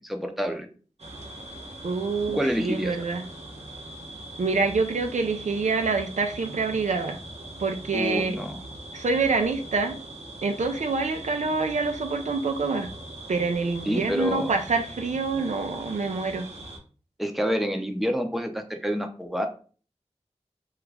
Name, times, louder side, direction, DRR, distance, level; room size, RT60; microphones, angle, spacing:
voice 1, 0.0-0.7 2.3-3.0 7.9-8.6 13.9-14.5 17.2-19.5, equal, ahead, 5 dB, 0.5 m, -28 dB
sound 1, 1.0-16.8, right 1 dB, 65° right, 0.8 m, -41 dB
voice 2, 1.8-3.2 4.4-7.2 7.6-8.4 8.9-10.0 10.4-12.9 13.3-16.5, right 4 dB, 85° right, 5 dB, 0.4 m, -26 dB
2.9 x 2.4 x 3.3 m, 0.39 s
wide cardioid pair, 40°, 12 cm